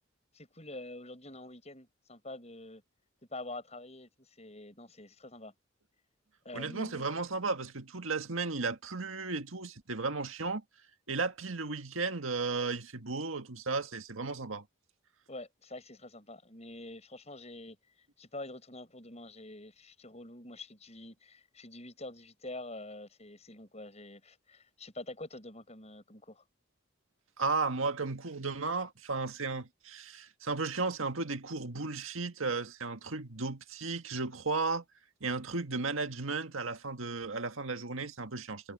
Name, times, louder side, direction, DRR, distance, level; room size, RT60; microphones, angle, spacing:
voice 1, 0.3-2.8 3.3-5.5 6.4-7.1 15.3-17.8 18.2-26.4, left 2 dB, 30° left, 7.9 m, -46 dB
voice 2, 6.5-10.6 11.1-14.6 27.4-34.8 35.2-38.7, right 4 dB, 80° right, 1.7 m, -34 dB
head